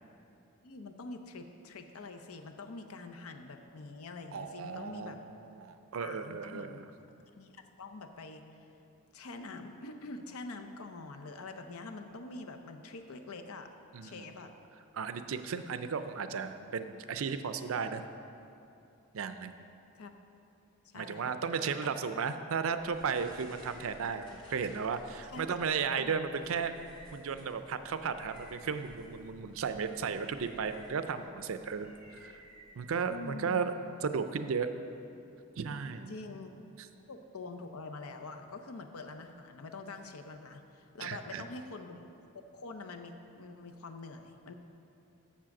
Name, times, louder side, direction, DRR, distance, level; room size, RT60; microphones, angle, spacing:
voice 1, 0.6-5.2 6.0-6.8 7.4-8.4 9.1-13.7 14.0-14.5 15.5-15.6 19.9-20.1 20.8-21.3 25.3-25.6 26.0-26.2 33.1-33.7 36.1-36.5 37.1-42.1 42.3-44.5, left 3 dB, 85° left, 6 dB, 0.7 m, -45 dB
voice 2, 4.3-5.1 5.4-6.8 13.9-14.2 14.9-18.0 19.1-19.6 20.9-26.7 27.1-32.3 32.8-33.7 34.0-34.7 35.6-36.1 41.0-41.4, right 6 dB, 70° right, 10 dB, 0.4 m, -35 dB
sound 1, 22.8-33.4, equal, 20° left, 1.7 m, -56 dB
7.5 x 6.9 x 5.9 m, 2.7 s
head